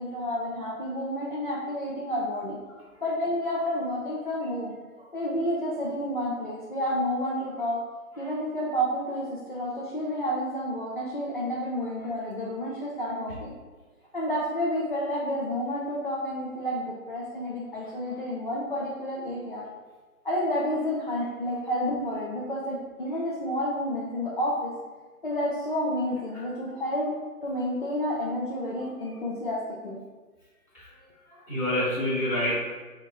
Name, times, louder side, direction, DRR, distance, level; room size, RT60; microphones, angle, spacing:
voice 1, 0.0-2.6 3.0-4.7 5.1-7.8 8.2-13.5 14.1-19.6 20.2-24.7 25.2-27.1 27.4-30.0, equal, 35° left, -5 dB, 0.5 m, -30 dB
voice 2, 30.7-32.5, left 1 dB, 10° left, -11 dB, 1.0 m, -30 dB
5.5 x 3.0 x 2.4 m, 1.3 s
figure-of-eight pair, 145°, 45 cm